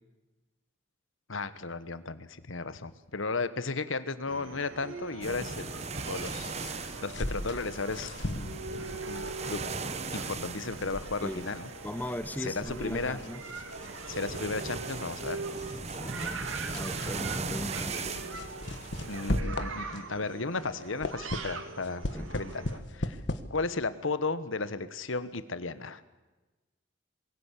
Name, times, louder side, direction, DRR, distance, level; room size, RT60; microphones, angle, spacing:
voice 1, 1.3-8.5 9.1-9.6 10.1-11.7 12.4-13.2 14.1-15.4 19.1-23.2 23.5-26.0, left 3 dB, 80° left, 13 dB, 1.3 m, -35 dB
sound 1, 4.3-22.8, right 3 dB, 85° right, 2.5 m, -42 dB
sound 2, 5.2-19.4, right 4 dB, 35° right, 1.0 m, -39 dB
sound 3, 6.2-20.2 20.6-23.4, left 1 dB, 60° left, 1.5 m, -39 dB
voice 2, 11.2-11.5 11.8-13.4 15.9-16.5 16.7-18.0 22.1-22.3, left 1 dB, 10° left, 14 dB, 0.8 m, -38 dB
23.0 x 16.5 x 8.5 m, 1.2 s
head